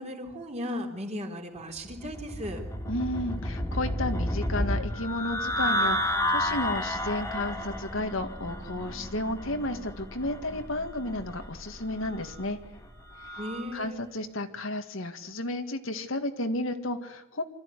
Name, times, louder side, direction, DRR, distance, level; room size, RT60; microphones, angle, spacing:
voice 1, 0.0-2.6 13.4-14.0, left 1 dB, 30° right, 2 dB, 3.7 m, -36 dB
sound 1, 1.9-13.7, left 1 dB, 15° left, 2.6 m, -32 dB
voice 2, 2.9-12.6 13.7-17.4, left 1 dB, 70° left, 7 dB, 1.9 m, -32 dB
25.5 x 14.0 x 9.8 m, 0.96 s
head